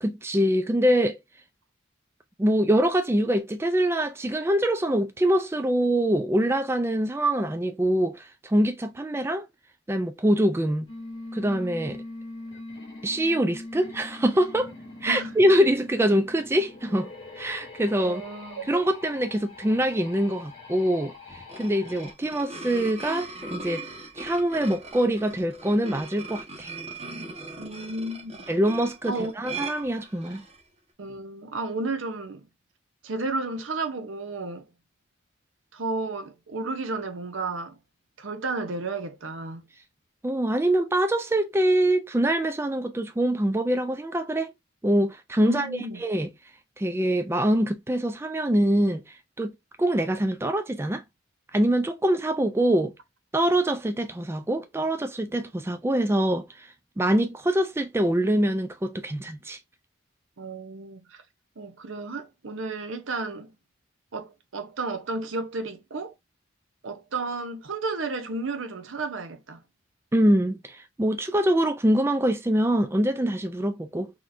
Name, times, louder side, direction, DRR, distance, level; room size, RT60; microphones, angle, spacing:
voice 1, 0.0-1.2 2.4-9.5 9.9-10.9 11.3-12.0 13.0-14.7 15.0-17.1 17.4-18.2 18.7-23.9 24.2-26.7 28.5-30.4 40.2-44.5 44.8-46.3 46.8-51.0 51.5-52.9 53.3-59.6 70.1-74.1, right 1 dB, 10° right, 0.3 m, -24 dB
sound 1, 10.9-22.1, left 2 dB, 25° left, 2.0 m, -42 dB
voice 2, 15.1-15.4 18.0-18.7 27.6-28.4 29.0-29.3 31.0-32.5 33.0-34.7 35.7-37.8 38.2-39.7 45.4-46.0 60.4-61.2 61.6-63.5 64.1-66.1 66.8-69.6, right 3 dB, 80° right, 0.8 m, -32 dB
sound 2, 21.3-30.6, right 3 dB, 30° right, 1.1 m, -39 dB
4.0 x 3.1 x 2.5 m
head